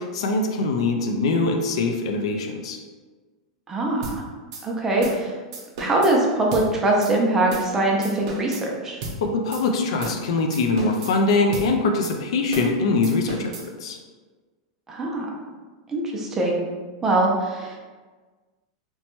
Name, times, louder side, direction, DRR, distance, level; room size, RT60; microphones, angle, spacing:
voice 1, 0.0-2.8 9.2-13.6 13.8-14.0, left 3 dB, 75° left, 4 dB, 0.4 m, -23 dB
voice 2, 3.7-4.2 4.6-5.3 5.8-9.0 14.9-15.3 15.9-16.6 17.0-17.8, right 2 dB, 15° right, -1 dB, 0.4 m, -22 dB
sound 1, 4.0-4.2 4.5-4.6 5.0-5.2 5.5-6.1 6.5-6.7 7.0-7.1 7.5-7.7 8.0-8.6 9.0-9.2 9.5-9.6 10.0-10.2 10.5-11.1 11.5-11.7 12.0-12.2 12.5-12.7 13.0-13.7, right 2 dB, 60° right, 0.7 m, -33 dB
2.9 x 2.1 x 2.9 m, 1.4 s
supercardioid pair, 155°, 3 cm